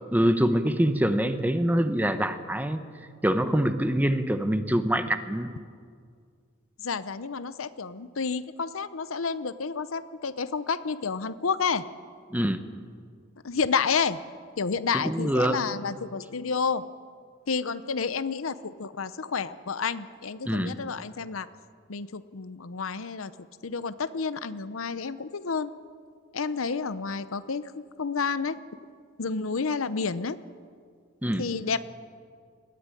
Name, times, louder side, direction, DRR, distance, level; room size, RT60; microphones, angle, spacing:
voice 1, 0.1-2.8 3.2-5.5 12.3-12.6 15.0-15.6 20.5-20.7 31.2-31.4, right 1 dB, 10° right, 9 dB, 1.0 m, -25 dB
voice 2, 6.8-11.8 13.4-14.2 14.6-16.8 17.5-21.5 21.9-23.3 23.6-25.7 26.3-28.8 29.2-30.4 31.4-31.8, left 5 dB, 80° left, 14 dB, 0.8 m, -30 dB
21.0 x 15.0 x 9.9 m, 2.1 s
head